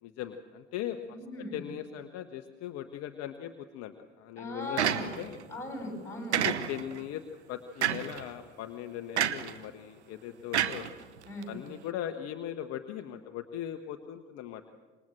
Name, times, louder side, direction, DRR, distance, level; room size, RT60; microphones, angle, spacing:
voice 1, 0.0-1.2 1.5-5.4 6.4-7.2 7.5-10.9 11.5-14.6, left 11 dB, 45° left, 8 dB, 1.2 m, -39 dB
voice 2, 1.1-1.6 4.4-5.2 5.5-6.4 11.2-11.6, left 1 dB, 10° left, 2 dB, 7.8 m, -39 dB
sound 1, 4.8-5.4 6.3-7.0 7.8-8.2 9.2-9.6 10.5-11.4, right 10 dB, 70° right, 1.1 m, -29 dB
26.5 x 21.5 x 7.5 m, 1.4 s
figure-of-eight pair, 65°, 35 cm